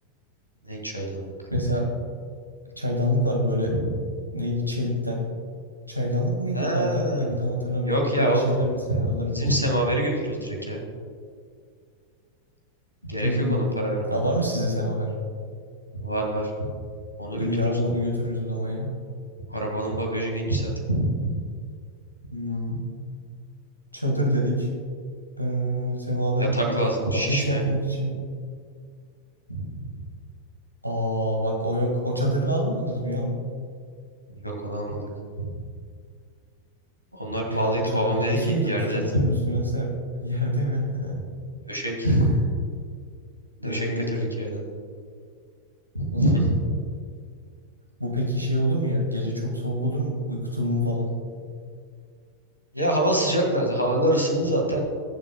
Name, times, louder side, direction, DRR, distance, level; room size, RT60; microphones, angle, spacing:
voice 1, 0.6-1.3 3.6-3.9 6.5-7.3 7.8-8.4 8.9-10.8 13.0-14.1 15.9-16.7 17.2-17.8 19.5-21.4 26.4-27.6 29.5-29.9 34.3-35.1 35.4-35.6 37.1-39.3 41.7-42.3 43.6-44.6 45.9-46.5 52.7-54.8, right 1 dB, 90° left, 1 dB, 2.0 m, -26 dB
voice 2, 1.5-1.9 2.8-3.7 4.3-5.2 5.9-9.5 13.2-13.7 14.1-15.1 17.4-18.9 22.3-22.8 23.9-24.7 25.4-26.8 27.1-28.1 30.8-33.4 37.5-39.9 40.2-41.2 42.0-42.4 43.6-44.3 46.1-46.6 48.0-51.1, equal, 90° right, 0 dB, 1.9 m, -26 dB
21.0 x 7.3 x 2.3 m, 2.1 s
figure-of-eight pair, 90°, 0 cm